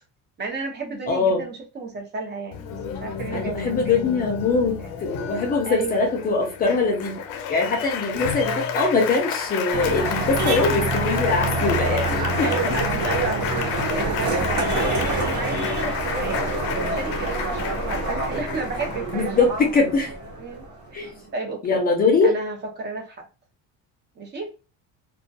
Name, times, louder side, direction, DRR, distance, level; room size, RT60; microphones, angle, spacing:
voice 1, 0.4-2.6 2.9-4.0 5.7-6.1 8.0-8.3 12.4-16.5 16.9-19.7 20.4-20.7 20.9-21.8 22.2-23.3 24.2-24.5, right 4 dB, 30° right, 0.6 m, -32 dB
voice 2, 1.1-1.4 3.3-7.2 7.5-12.7 19.1-20.1 20.9-21.1 21.6-22.3, left 4 dB, 25° left, 0.5 m, -22 dB
Applause, 2.5-19.5, left 7 dB, 85° left, 0.6 m, -31 dB
sound 1, 9.7-21.3, right 2 dB, 50° right, 1.0 m, -26 dB
2.3 x 2.1 x 2.6 m
cardioid pair, 150°, 34 cm